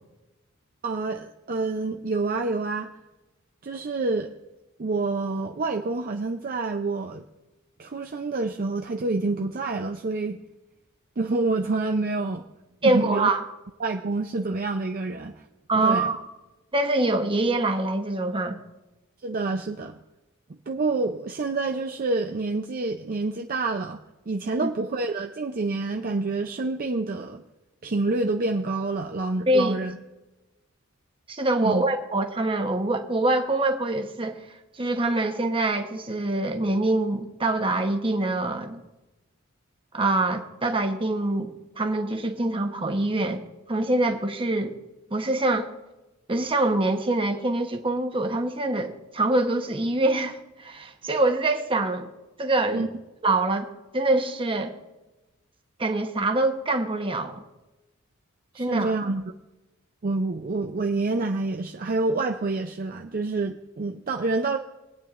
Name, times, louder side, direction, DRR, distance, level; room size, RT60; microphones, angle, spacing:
voice 1, 0.8-2.9 3.6-4.3 4.8-7.2 7.8-10.4 11.2-12.4 12.8-13.3 13.8-15.4 15.7-16.1 19.2-20.0 20.7-24.0 24.3-27.4 27.8-30.0 31.6-31.8 52.7-52.9 58.5-59.3 60.0-64.6, right 3 dB, 45° right, 4 dB, 0.5 m, -27 dB
voice 2, 12.8-13.4 15.7-16.2 16.7-18.6 24.6-24.7 29.5-29.8 31.3-34.4 34.8-38.8 39.9-41.5 41.8-43.4 43.7-44.7 45.1-45.7 46.3-52.1 52.4-52.9 53.2-54.7 55.8-57.4 58.6-58.9, right 2 dB, 25° right, 5 dB, 1.1 m, -24 dB
23.5 x 9.0 x 2.5 m, 1.0 s
head